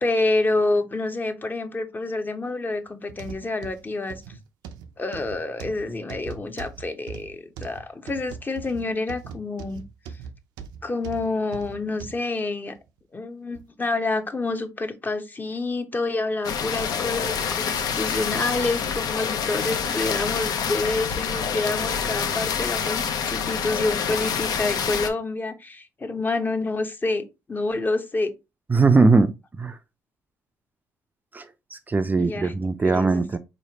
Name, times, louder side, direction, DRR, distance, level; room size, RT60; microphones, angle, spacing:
voice 1, 0.0-4.2 5.0-9.8 10.8-12.8 13.1-28.4 32.2-32.5 32.8-33.3, left 2 dB, 25° left, 0.8 m, -28 dB
sound 1, 3.1-12.2 12.7-12.9 13.5-13.6, right 6 dB, 90° right, 0.5 m, -40 dB
sound 2, 16.4-25.1, left 7 dB, 65° left, 0.6 m, -27 dB
voice 2, 28.7-29.3 29.6-29.8 31.3-31.5 31.7-33.4, right 3 dB, 25° right, 0.4 m, -20 dB
4.1 x 3.1 x 2.8 m
supercardioid pair, 75°, 7 cm